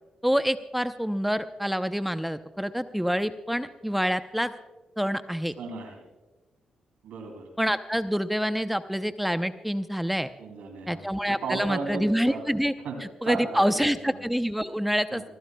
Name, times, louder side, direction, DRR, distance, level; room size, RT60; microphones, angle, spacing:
voice 1, 0.2-4.5 5.0-5.5 7.6-10.3 10.9-12.7 13.2-15.3, equal, 5° right, 11 dB, 0.7 m, -27 dB
voice 2, 5.6-6.0 7.0-7.5 10.4-11.1 11.4-12.4 12.8-12.9 13.2-13.9 15.1-15.2, right 4 dB, 80° right, 4 dB, 2.9 m, -35 dB
27.5 x 15.0 x 2.3 m, 1.1 s
supercardioid pair, 50°, 2 cm